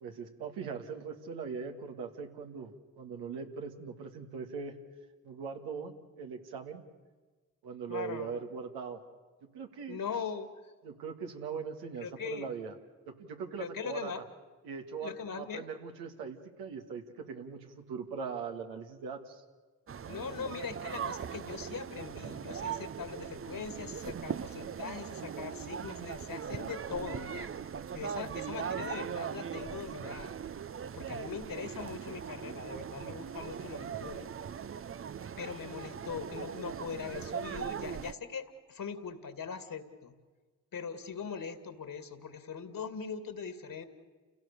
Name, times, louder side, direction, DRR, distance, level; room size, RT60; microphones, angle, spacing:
voice 1, 0.0-4.8 5.2-6.8 7.6-9.0 9.5-10.0 10.8-12.8 13.1-14.2 14.6-19.4, right 6 dB, 85° right, 4 dB, 1.9 m, -41 dB
voice 2, 7.9-8.4 9.9-10.7 12.0-12.5 13.6-14.2 15.0-15.6 20.1-27.5 27.9-30.4 31.0-34.3 35.4-40.1 40.7-43.8, left 6 dB, 60° left, 8 dB, 2.5 m, -41 dB
sound 1, 19.9-38.1, right 7 dB, 35° right, 0.6 m, -40 dB
29.5 x 16.5 x 6.8 m, 1.3 s
hypercardioid pair, 40°, 37 cm